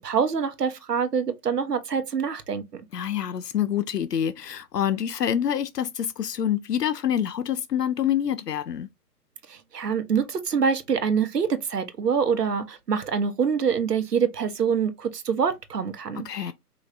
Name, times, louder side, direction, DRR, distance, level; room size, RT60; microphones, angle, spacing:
voice 1, 0.0-2.8 9.5-16.5, right 6 dB, 80° right, 1.0 m, -25 dB
voice 2, 2.9-8.9 16.1-16.5, left 9 dB, 80° left, 0.6 m, -26 dB
4.9 x 3.1 x 2.5 m
hypercardioid pair, 155°, 47 cm